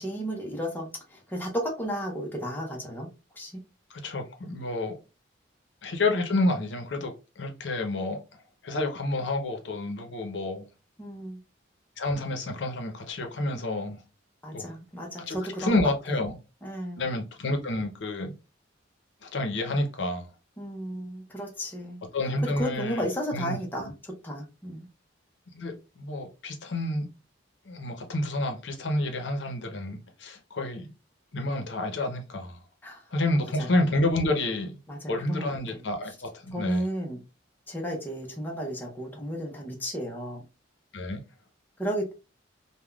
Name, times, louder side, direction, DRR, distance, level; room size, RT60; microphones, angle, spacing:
voice 1, 0.0-3.1 3.4-3.6 11.0-11.4 14.4-15.7 16.6-17.0 20.6-22.0 22.4-24.9 32.8-33.0 33.6-33.7 34.9-35.8 36.5-37.2 37.7-40.4 41.8-42.1, equal, 10° left, 0.6 m, -33 dB
voice 2, 3.9-5.0 5.8-8.2 8.6-10.7 12.0-14.0 14.5-14.7 15.3-16.4 17.0-18.3 19.2-20.3 22.1-23.6 25.5-27.1 27.7-30.9 31.3-32.6 33.1-34.8 35.1-36.8 40.9-41.2, left 2 dB, 65° left, 0.7 m, -29 dB
3.4 x 2.1 x 2.3 m
head